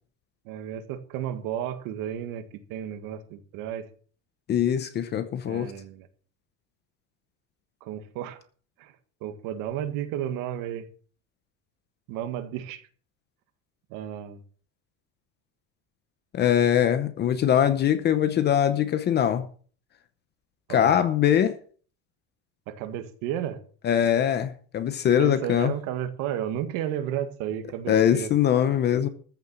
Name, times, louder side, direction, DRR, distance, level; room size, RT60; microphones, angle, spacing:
voice 1, 0.5-3.9 5.5-6.1 7.8-8.4 8.8-8.9 9.2-10.9 12.1-12.8 13.9-14.4 20.7-21.0 22.7-23.6 25.2-28.3, right 10 dB, 55° right, 1.9 m, -33 dB
voice 2, 4.5-5.7 16.3-19.5 20.7-21.6 23.8-25.7 27.9-29.1, left 9 dB, 25° left, 0.8 m, -22 dB
14.5 x 7.0 x 7.5 m
cardioid pair, 180°, 41 cm